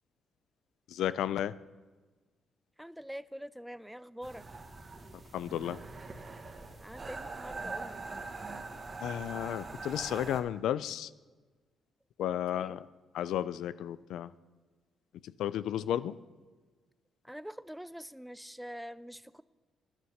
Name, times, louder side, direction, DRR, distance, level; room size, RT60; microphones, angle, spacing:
voice 1, 0.9-1.5 5.3-5.8 9.0-11.1 12.2-12.9 13.1-14.3 15.2-16.2, left 11 dB, 80° left, 16 dB, 0.4 m, -33 dB
voice 2, 2.8-4.5 6.8-8.1 12.5-12.8 17.2-19.4, equal, ahead, 17 dB, 0.4 m, -45 dB
sound 1, 4.2-10.4, right 3 dB, 35° right, 1.3 m, -43 dB
9.6 x 9.5 x 6.5 m, 1.3 s
cardioid pair, 90°, 0 cm